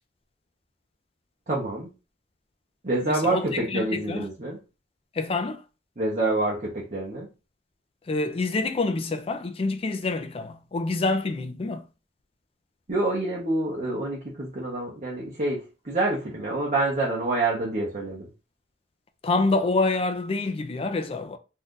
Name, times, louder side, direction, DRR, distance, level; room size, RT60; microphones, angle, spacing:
voice 1, 1.5-1.9 2.8-4.6 6.0-7.3 12.9-18.3, right 2 dB, 40° right, 0.8 m, -27 dB
voice 2, 3.1-3.4 3.7-4.2 5.2-5.6 8.1-11.8 19.2-21.4, left 3 dB, 30° left, 0.4 m, -26 dB
2.7 x 2.4 x 3.6 m
head